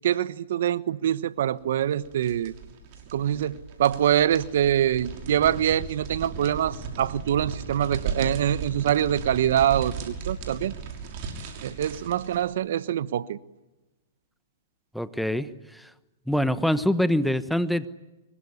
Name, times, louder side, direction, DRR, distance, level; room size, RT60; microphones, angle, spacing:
voice 1, 0.0-2.5 3.1-3.5 3.8-10.7 11.6-13.4, right 10 dB, 65° right, 1.1 m, -24 dB
sound 1, 1.8-12.5, right 5 dB, 45° right, 5.9 m, -36 dB
voice 2, 14.9-15.9 16.3-17.9, equal, ahead, 1.2 m, -25 dB
25.0 x 23.0 x 9.9 m
hypercardioid pair, 130°, 0 cm